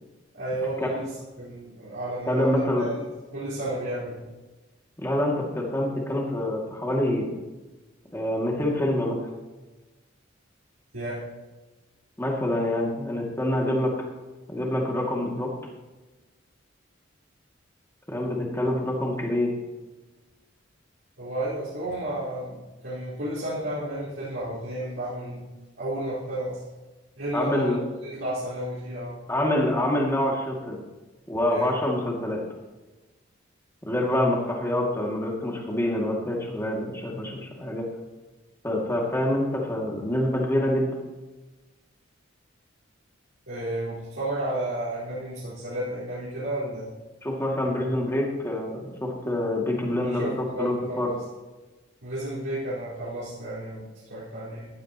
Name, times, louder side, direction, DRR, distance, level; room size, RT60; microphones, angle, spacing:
voice 1, 0.3-3.0 3.3-4.2 10.9-11.3 21.2-25.5 25.8-26.6 27.2-27.7 28.0-29.2 31.5-31.7 43.5-46.9 50.0-51.2 52.0-54.7, right 1 dB, 75° right, -11 dB, 4.6 m, -32 dB
voice 2, 2.3-2.8 5.0-7.3 8.1-9.2 12.2-13.9 14.5-15.5 18.1-19.5 27.3-27.8 29.3-30.8 31.3-32.4 33.8-37.9 38.6-40.9 47.2-51.1, left 1 dB, 15° left, -1 dB, 2.4 m, -26 dB
15.5 x 12.0 x 3.0 m, 1.2 s
head